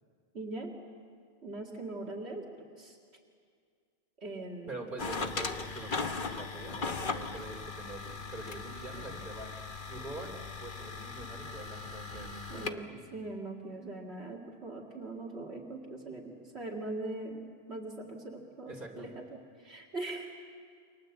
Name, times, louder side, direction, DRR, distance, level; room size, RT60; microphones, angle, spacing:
voice 1, 0.3-0.7 1.4-3.0 4.2-4.8 12.5-17.4 17.7-20.4, right 2 dB, 75° right, -1 dB, 2.5 m, -41 dB
voice 2, 4.7-9.5 9.9-12.8 18.7-19.1, right 2 dB, 50° right, 2 dB, 3.2 m, -44 dB
sound 1, 5.0-12.7, left 4 dB, 50° left, 1.3 m, -38 dB
29.0 x 25.0 x 7.9 m, 2.2 s
omnidirectional pair, 1.1 m